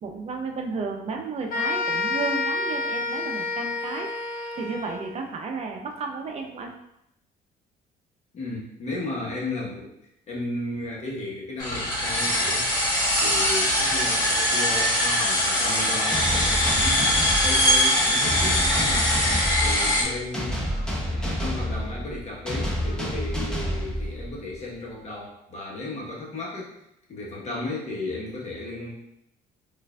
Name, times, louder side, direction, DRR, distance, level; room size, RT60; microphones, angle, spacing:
voice 1, 0.0-4.1 4.5-6.7, right 4 dB, 40° right, 2 dB, 0.6 m, -33 dB
sound 1, 1.5-5.2, left 3 dB, 60° left, 0.7 m, -29 dB
voice 2, 8.3-9.9 10.3-12.7 13.2-17.1 17.4-19.2 19.6-20.6 21.1-26.7 27.1-28.9, left 2 dB, 40° left, -4 dB, 1.1 m, -34 dB
sound 2, 11.6-20.0, equal, 25° left, 1.2 m, -22 dB
sound 3, 16.1-24.6, equal, 5° left, 0.7 m, -29 dB
4.5 x 2.6 x 2.3 m, 0.79 s
cardioid pair, 110°, 17 cm